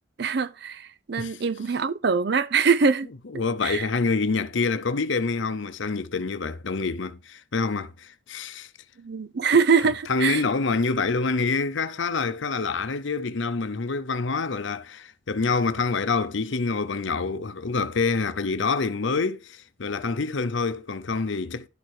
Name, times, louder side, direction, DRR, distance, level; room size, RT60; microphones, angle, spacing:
voice 1, 0.2-3.1 3.6-3.9 9.0-10.4, right 5 dB, 55° right, 0.5 m, -23 dB
voice 2, 3.3-8.7 10.1-21.7, left 4 dB, 70° left, 0.7 m, -26 dB
11.5 x 4.4 x 4.8 m
head